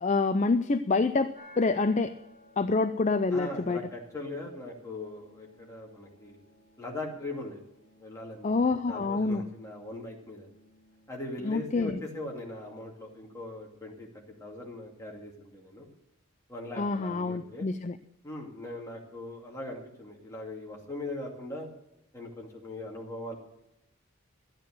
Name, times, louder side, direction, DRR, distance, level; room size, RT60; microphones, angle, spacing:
voice 1, 0.0-2.1 2.6-3.8 8.4-9.4 11.4-12.0 16.8-18.0, left 3 dB, 30° left, 10 dB, 0.4 m, -27 dB
sound 1, 1.3-13.3, left 1 dB, 25° right, 4.4 m, -59 dB
voice 2, 3.3-6.4 6.8-7.6 8.0-8.5 8.9-10.5 11.1-14.1 14.4-15.9 16.5-17.7 18.2-21.7 22.1-23.4, left 2 dB, 15° left, -2 dB, 2.4 m, -40 dB
13.0 x 9.0 x 6.5 m, 0.82 s
head